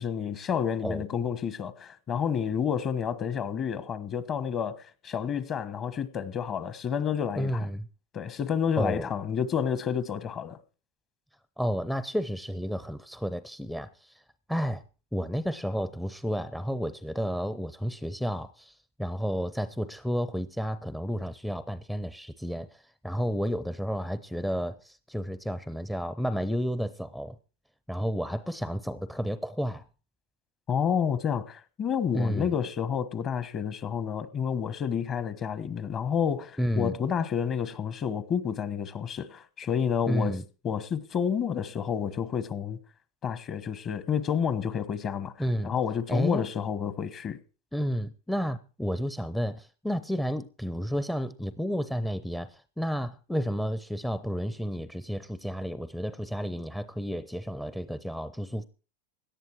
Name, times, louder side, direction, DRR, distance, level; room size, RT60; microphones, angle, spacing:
voice 1, 0.0-7.7 8.1-10.6 30.7-40.3 40.6-42.8 43.2-45.3 45.6-47.4, left 7 dB, 35° left, 1.2 m, -29 dB
voice 2, 7.3-7.9 8.8-9.1 11.6-14.2 14.5-14.8 15.1-27.4 27.9-29.9 32.1-32.5 36.6-36.9 40.1-40.4 45.4-45.7 46.1-46.4 47.7-58.6, equal, ahead, 0.6 m, -31 dB
17.5 x 11.0 x 4.7 m
supercardioid pair, 120°, 0 cm